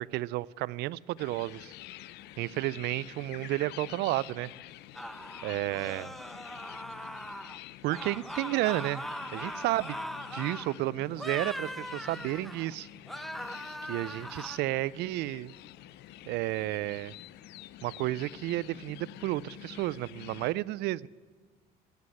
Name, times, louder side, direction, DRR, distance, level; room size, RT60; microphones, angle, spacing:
voice 1, 0.0-1.7 2.4-4.5 5.4-6.1 7.8-9.1 9.3-10.0 10.3-12.9 13.9-15.5 16.3-17.1 17.8-21.1, right 17 dB, 80° right, 22 dB, 0.4 m, -32 dB
sound 1, 1.2-20.5, left 14 dB, 80° left, 0.5 m, -48 dB
sound 2, 4.9-7.6 7.9-10.8 11.1-12.7 13.1-14.6, equal, ahead, 0.7 m, -40 dB
15.0 x 9.7 x 9.6 m, 1.4 s
cardioid pair, 110°, 17 cm